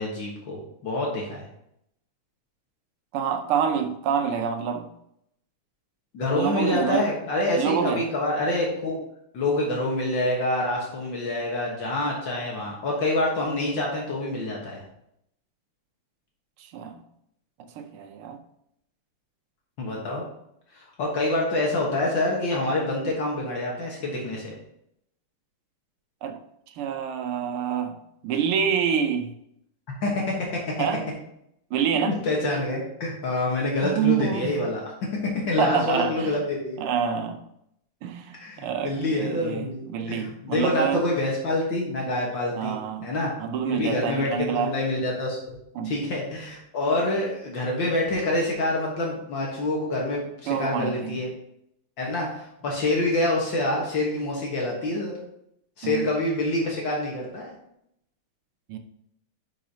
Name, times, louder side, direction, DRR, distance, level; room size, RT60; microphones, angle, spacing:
voice 1, 0.0-1.5 6.1-9.0 9.3-14.8 19.8-20.2 20.7-24.5 30.0-30.6 31.9-34.8 35.2-36.8 38.3-42.8 43.0-43.3 43.7-51.3 52.0-55.2 55.8-57.6, left 2 dB, 60° left, -2 dB, 2.0 m, -26 dB
voice 2, 3.1-4.9 6.4-7.1 7.6-8.0 16.6-17.0 17.8-18.4 26.2-26.4 26.8-28.0 28.2-29.3 30.8-31.0 31.7-32.2 33.8-34.6 35.6-36.4 36.8-37.4 38.0-41.0 42.6-43.1 43.4-44.7 45.8-46.0 50.5-51.2 55.8-56.1 58.7-58.8, right 7 dB, 90° right, 7 dB, 1.7 m, -27 dB
10.5 x 5.2 x 2.8 m, 0.76 s
omnidirectional pair, 2.3 m